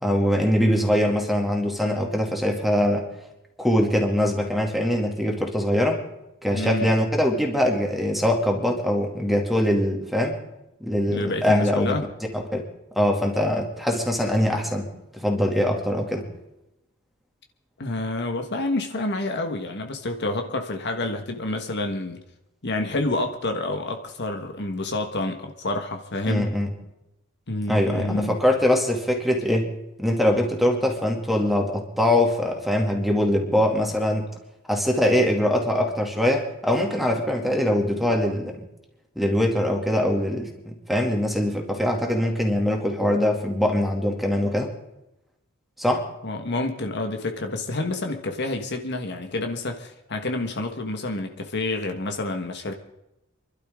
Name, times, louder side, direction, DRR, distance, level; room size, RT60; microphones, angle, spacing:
voice 1, 0.0-3.1 3.6-6.0 6.4-10.3 10.8-11.9 12.3-12.7 12.9-14.9 15.1-16.3 26.3-26.7 27.7-29.7 30.0-34.3 34.7-38.6 39.2-44.7 45.8-46.1, left 1 dB, ahead, 1 dB, 2.3 m, -22 dB
voice 2, 6.5-6.9 11.1-12.0 17.8-22.2 22.6-26.5 27.5-28.3 46.2-52.7, left 2 dB, 55° left, 4 dB, 1.5 m, -28 dB
27.5 x 12.0 x 3.7 m, 0.89 s
head